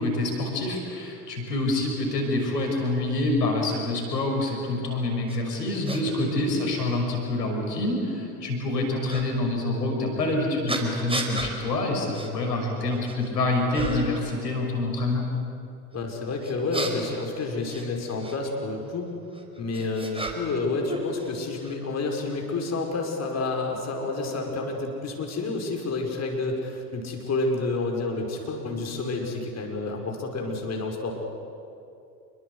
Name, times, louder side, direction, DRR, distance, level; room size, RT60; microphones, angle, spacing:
voice 1, 0.0-15.3, left 2 dB, 85° left, 2 dB, 6.1 m, -26 dB
sound 1, 5.3-5.4 5.9-6.0 6.9-7.0 9.1-9.2 10.7-11.5 12.1-12.3 12.8-13.3 13.7-14.2 16.4-18.4 19.3-20.6 20.9-21.7, right 2 dB, 10° right, 4.6 m, -33 dB
voice 2, 15.9-19.1 19.6-31.1, left 3 dB, 35° left, 1 dB, 5.6 m, -29 dB
28.0 x 24.0 x 8.1 m, 2.6 s
hypercardioid pair, 80°, 47 cm